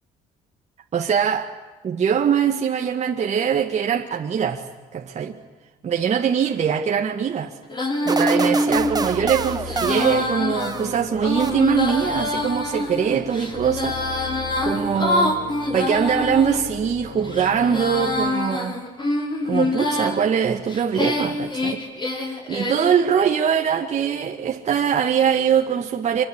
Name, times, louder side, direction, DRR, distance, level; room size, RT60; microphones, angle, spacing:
voice 1, 0.9-1.5 1.8-4.6 4.9-5.4 5.8-7.6 8.1-15.4 15.7-18.8 19.4-21.8 22.2-26.2, right 7 dB, 40° right, 1.9 m, -22 dB
Female singing, 7.7-16.6 17.2-20.2 20.7-23.0, left 1 dB, 25° left, 6.8 m, -25 dB
sound 1, 8.1-11.0 11.4-12.0, right 4 dB, 20° right, 1.3 m, -28 dB
sound 2, 8.7-18.3, left 6 dB, 60° left, 3.3 m, -38 dB
27.0 x 24.0 x 8.9 m
cardioid pair, 110°, 17 cm